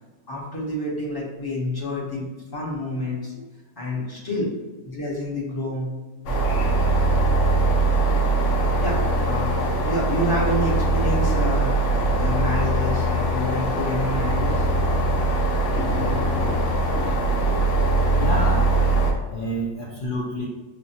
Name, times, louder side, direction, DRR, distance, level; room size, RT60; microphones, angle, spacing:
voice 1, 0.3-3.5 3.8-4.5 4.8-5.9 8.8-11.7 12.1-14.6, left 1 dB, 20° left, -5 dB, 0.7 m, -28 dB
sound 1, 6.3-19.1, right 2 dB, 65° left, 0.8 m, -21 dB
voice 2, 18.1-18.7 19.3-20.5, equal, 85° left, -3 dB, 0.4 m, -28 dB
5.8 x 2.1 x 2.8 m, 1.2 s
omnidirectional pair, 1.5 m